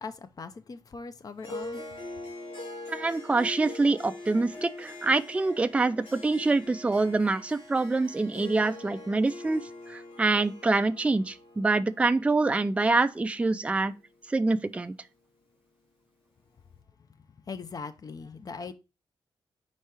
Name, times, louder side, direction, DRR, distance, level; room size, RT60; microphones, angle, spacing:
voice 1, 0.0-1.8 17.5-18.7, left 4 dB, 45° left, 0.7 m, -40 dB
Harp, 1.4-13.9, left 2 dB, 90° left, 1.9 m, -43 dB
voice 2, 2.9-9.6 9.9-13.9 14.3-14.9, right 3 dB, 15° right, 0.4 m, -25 dB
4.6 x 4.3 x 4.7 m
cardioid pair, 100°, 9 cm